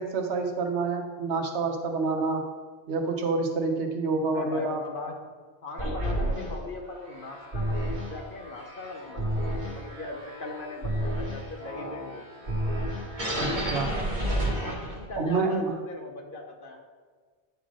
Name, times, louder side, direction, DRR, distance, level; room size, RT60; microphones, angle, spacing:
voice 1, 0.0-2.4 2.9-4.8 13.3-13.9 15.2-15.7, right 4 dB, 85° right, 4 dB, 1.1 m, -28 dB
voice 2, 4.2-5.2 5.6-12.3 14.9-16.8, left 3 dB, 55° left, 2 dB, 1.0 m, -39 dB
sound 1, 5.8-15.2, equal, 45° right, 1.4 m, -31 dB
9.0 x 3.9 x 4.9 m, 1.5 s
omnidirectional pair, 1.1 m